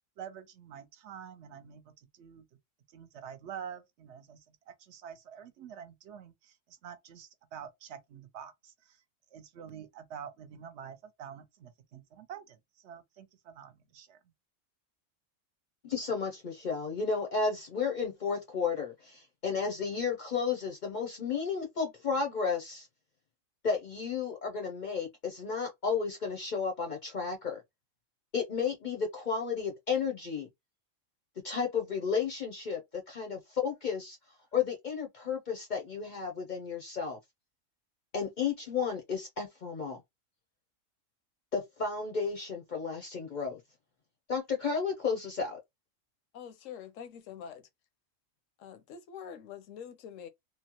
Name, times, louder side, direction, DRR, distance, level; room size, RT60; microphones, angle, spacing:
voice 1, 0.2-2.4 2.9-9.0 9.3-14.2, right 8 dB, 65° right, 0.8 m, -47 dB
voice 2, 15.8-22.9 23.6-27.6 28.3-30.5 31.4-34.2 34.5-37.2 38.1-40.0 41.5-43.6 44.3-45.6, left 5 dB, 50° left, 0.6 m, -33 dB
voice 3, 46.3-47.7 48.6-50.3, left 8 dB, 75° left, 1.0 m, -45 dB
3.1 x 2.0 x 2.8 m
omnidirectional pair, 1.4 m